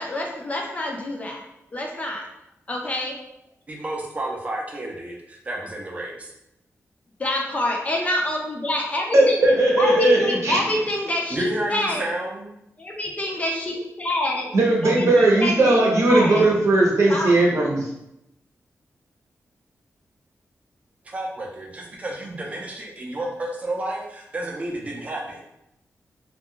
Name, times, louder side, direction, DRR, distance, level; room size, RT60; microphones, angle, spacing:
voice 1, 0.0-1.4 1.7-2.3 2.7-3.2 7.2-9.4 9.8-12.0 12.8-14.5 14.8-16.5 17.1-17.3, left 1 dB, 25° left, 0 dB, 0.4 m, -27 dB
voice 2, 3.7-6.3 11.3-12.5 21.0-25.4, right 1 dB, 25° right, -1 dB, 0.5 m, -31 dB
voice 3, 9.1-10.6 14.5-17.9, right 2 dB, 65° right, -2 dB, 0.7 m, -18 dB
2.3 x 2.1 x 3.6 m, 0.84 s
wide cardioid pair, 155°, 5 cm